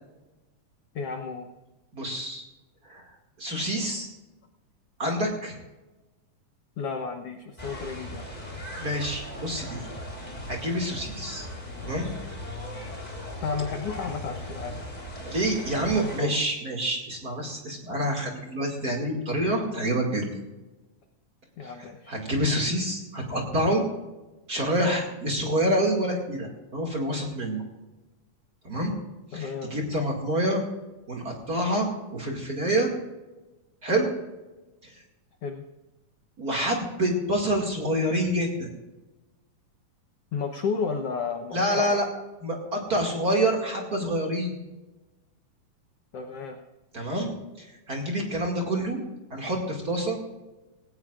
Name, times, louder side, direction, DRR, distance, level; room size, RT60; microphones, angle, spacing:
voice 1, 0.9-1.5 6.8-8.3 13.4-14.8 15.8-16.4 21.6-22.2 29.3-29.7 35.4-35.6 40.3-42.0 46.1-46.6, left 5 dB, 70° left, 4 dB, 1.5 m, -32 dB
voice 2, 1.9-2.5 2.8-3.0 3.4-4.1 5.0-5.6 8.8-9.8 10.5-11.5 11.8-12.1 15.3-20.3 21.6-21.7 22.1-23.8 24.5-27.6 28.6-28.9 29.3-30.6 31.1-32.9 33.8-34.1 36.4-38.7 41.5-42.0 42.4-44.5 46.9-47.3 47.6-49.0 49.3-50.2, right 1 dB, 30° right, 0 dB, 2.3 m, -27 dB
sound 1, 7.6-16.2, left 1 dB, 10° left, 3.6 m, -38 dB
18.5 x 18.0 x 2.5 m, 1.1 s
omnidirectional pair, 3.9 m